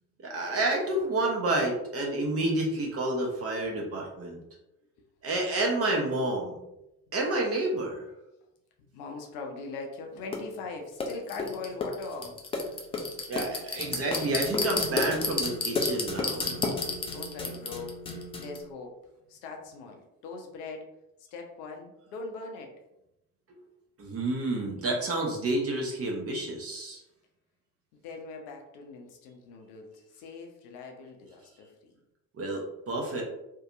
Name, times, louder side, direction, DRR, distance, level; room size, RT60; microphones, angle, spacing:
voice 1, 0.2-4.4 5.2-6.5 7.1-8.0 13.3-16.5 24.0-27.0 32.3-33.2, right 2 dB, 30° right, 0 dB, 0.7 m, -29 dB
voice 2, 8.9-12.3 17.1-17.9 18.4-18.9 19.3-20.9 21.3-22.7 28.0-31.9, left 4 dB, 65° left, 2 dB, 0.6 m, -41 dB
sound 1, 10.3-10.4 11.0-18.6, left 3 dB, 15° left, 0.3 m, -31 dB
2.6 x 2.2 x 2.4 m, 0.89 s
figure-of-eight pair, 45°, 45 cm